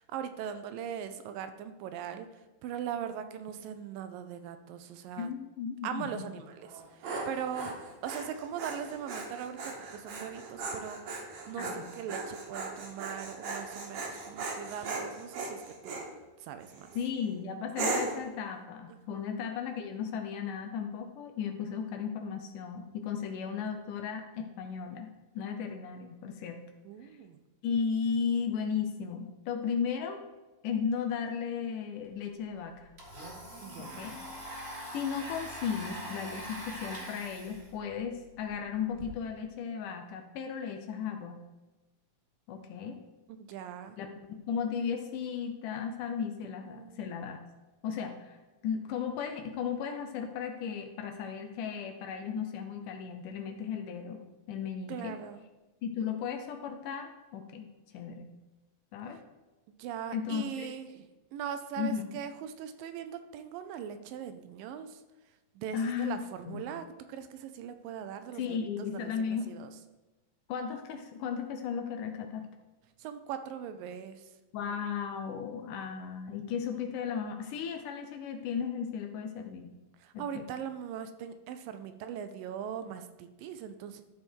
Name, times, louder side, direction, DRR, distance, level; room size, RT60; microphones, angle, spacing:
voice 1, 0.0-5.3 5.8-11.1 11.5-16.0 16.4-16.9 19.1-19.3 26.8-27.4 33.6-34.1 43.3-44.0 46.6-47.0 54.9-55.5 59.8-65.0 65.6-69.7 73.0-74.3 80.0-84.0, right 8 dB, 80° right, 9 dB, 2.2 m, -40 dB
voice 2, 5.2-6.2 11.6-11.9 17.0-26.6 27.0-27.1 27.6-30.2 30.6-32.9 33.8-34.2 34.9-41.4 42.5-43.0 44.0-47.4 47.8-48.4 48.6-54.2 54.5-55.2 55.8-57.7 57.9-58.3 58.9-59.2 60.1-60.7 61.8-62.0 65.7-66.6 68.4-69.5 70.5-72.5 74.5-79.7 80.1-80.4, left 7 dB, 75° left, 5 dB, 2.1 m, -35 dB
Dog, 6.7-16.1 16.6-17.1 17.8-18.3, right 3 dB, 60° right, 2.4 m, -38 dB
Domestic sounds home sounds, 32.0-32.1 32.4-39.0, equal, 40° right, 0.9 m, -43 dB
12.5 x 5.0 x 4.5 m, 1.1 s
omnidirectional pair, 4.1 m